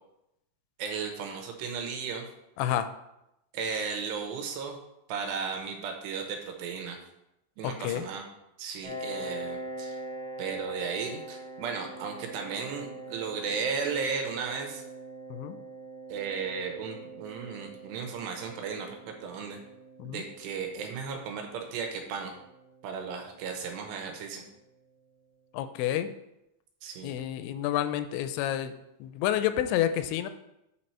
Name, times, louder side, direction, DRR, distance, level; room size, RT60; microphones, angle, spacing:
voice 1, 0.8-2.2 3.5-4.8 5.1-7.0 7.6-8.2 8.6-10.0 10.4-14.8 16.1-19.6 20.0-22.3 22.8-24.4 26.8-27.1, right 5 dB, 75° right, 3 dB, 2.8 m, -35 dB
voice 2, 2.6-2.9 7.6-8.1 15.3-15.6 20.0-20.2 25.5-26.1 27.0-28.7 29.0-30.3, left 11 dB, 85° left, 11 dB, 2.8 m, -29 dB
Piano, 8.8-24.2, right 2 dB, 50° right, 2.3 m, -43 dB
8.5 x 4.4 x 4.3 m, 0.87 s
omnidirectional pair, 5.2 m